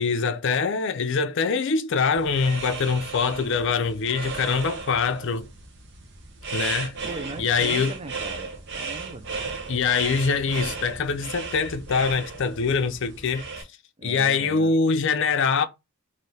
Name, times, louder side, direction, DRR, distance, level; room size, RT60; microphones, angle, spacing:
voice 1, 0.0-5.5 6.5-7.0 7.4-7.9 9.7-13.5 14.0-15.6, left 5 dB, 55° left, 0.5 m, -24 dB
sound 1, 2.1-13.6, right 4 dB, 55° right, 0.8 m, -35 dB
voice 2, 7.1-9.3 14.0-14.7, right 3 dB, 25° right, 0.4 m, -39 dB
3.3 x 2.6 x 4.1 m
head